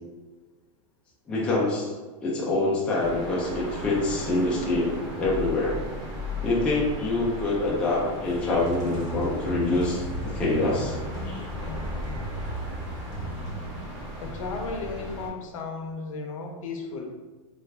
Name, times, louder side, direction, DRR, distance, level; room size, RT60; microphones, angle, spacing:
voice 1, 1.3-1.9 2.2-5.8 6.4-11.0 11.3-11.5, left 2 dB, 5° left, -5 dB, 0.3 m, -26 dB
sound 1, 3.0-15.3, left 1 dB, 50° right, 1.1 m, -36 dB
sound 2, 8.2-14.1, right 2 dB, 25° left, 1.0 m, -36 dB
voice 2, 14.2-17.1, left 4 dB, 75° left, 3 dB, 0.7 m, -34 dB
3.3 x 2.3 x 3.3 m, 1.4 s
supercardioid pair, 170°, 17 cm